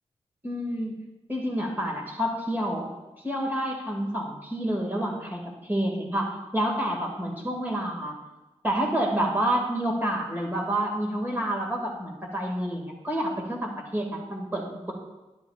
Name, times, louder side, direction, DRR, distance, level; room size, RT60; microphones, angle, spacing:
voice 1, 0.4-0.9 1.3-2.9 3.2-8.1 8.6-14.9, right 1 dB, 15° right, -1 dB, 2.3 m, -28 dB
11.5 x 11.5 x 2.5 m, 1.1 s
wide cardioid pair, 170°, 11 cm